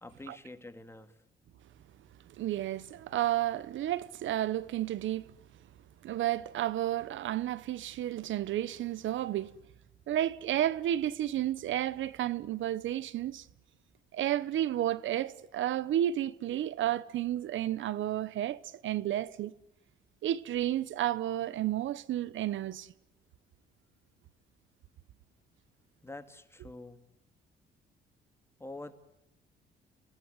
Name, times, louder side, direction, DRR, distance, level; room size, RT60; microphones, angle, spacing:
voice 1, 0.0-1.2 26.0-27.0 28.6-29.0, left 2 dB, 10° left, 2.4 m, -46 dB
voice 2, 2.4-5.3 6.0-9.5 10.1-13.5 14.1-19.5 20.2-22.9, right 12 dB, 75° right, 1.0 m, -32 dB
28.0 x 18.5 x 9.2 m
cardioid pair, 90°, 20 cm